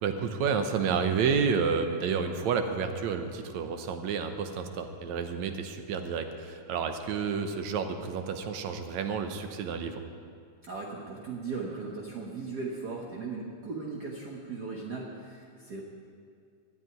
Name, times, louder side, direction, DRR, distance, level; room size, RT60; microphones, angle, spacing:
voice 1, 0.0-10.0, right 6 dB, 70° right, 7 dB, 2.1 m, -30 dB
voice 2, 10.6-15.8, right 4 dB, 50° right, -2 dB, 1.3 m, -37 dB
13.5 x 9.4 x 9.4 m, 2.3 s
omnidirectional pair, 3.6 m